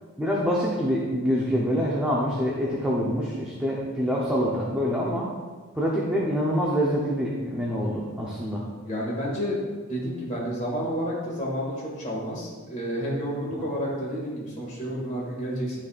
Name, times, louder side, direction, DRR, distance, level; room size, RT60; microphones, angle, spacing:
voice 1, 0.2-5.3 5.7-8.6 13.5-13.7, equal, 5° right, -5 dB, 0.7 m, -26 dB
voice 2, 8.8-9.6 9.9-15.8, equal, 35° left, -5 dB, 2.0 m, -30 dB
12.0 x 4.1 x 2.4 m, 1.4 s
head